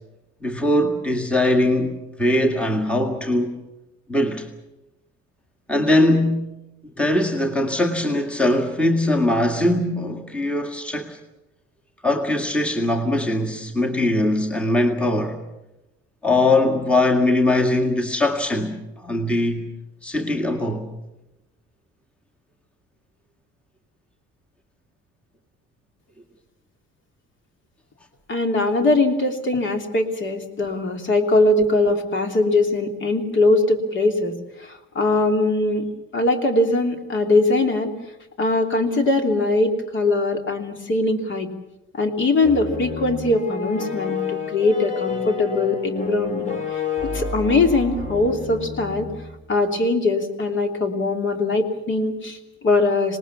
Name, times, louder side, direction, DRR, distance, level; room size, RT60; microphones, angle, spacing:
voice 1, 0.4-3.5 4.1-4.5 5.7-6.5 7.0-11.2 12.0-15.4 16.2-19.7 20.0-20.9, left 1 dB, 5° left, 1.9 m, -21 dB
voice 2, 28.3-35.9 36.1-37.9 38.4-41.5 41.9-46.8 47.1-49.1 49.5-53.2, left 2 dB, 40° left, 3.0 m, -21 dB
sound 1, 42.4-49.4, left 5 dB, 25° left, 3.1 m, -29 dB
26.5 x 19.5 x 7.1 m
cardioid pair, 155°, 29 cm